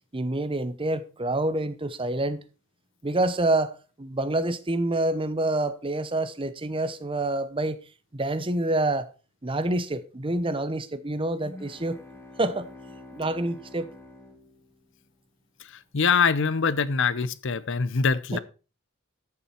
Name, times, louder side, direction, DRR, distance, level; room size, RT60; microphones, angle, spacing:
voice 1, 0.1-2.4 3.0-7.8 8.1-9.1 9.4-12.0 12.4-12.7 13.1-13.9 18.3-18.4, right 2 dB, 25° right, 0.8 m, -27 dB
sound 1, 11.3-15.4, left 2 dB, 15° left, 2.2 m, -47 dB
voice 2, 15.6-18.4, left 5 dB, 65° left, 0.7 m, -24 dB
13.5 x 7.2 x 4.4 m
head